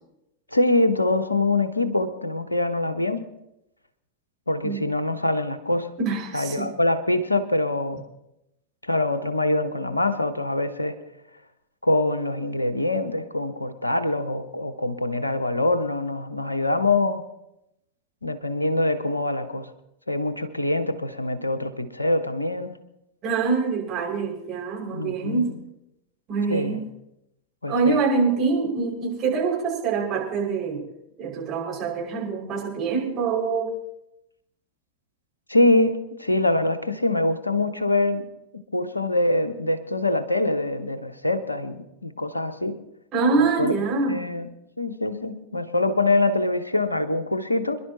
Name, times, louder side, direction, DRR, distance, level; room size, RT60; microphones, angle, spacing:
voice 1, 0.5-3.3 4.5-5.9 6.3-8.0 8.8-11.0 11.8-17.2 18.2-19.7 20.1-22.7 24.9-25.5 26.5-26.8 27.6-28.0 35.5-38.3 38.7-42.8 43.4-43.7 44.1-44.5 44.8-47.8, left 2 dB, 85° left, 10 dB, 1.0 m, -24 dB
voice 2, 6.0-6.7 23.2-25.5 26.3-26.9 27.7-30.8 31.2-33.7 43.1-44.2, right 4 dB, 30° right, -3 dB, 5.8 m, -25 dB
27.0 x 11.5 x 3.0 m, 0.87 s
figure-of-eight pair, 90°, 0 cm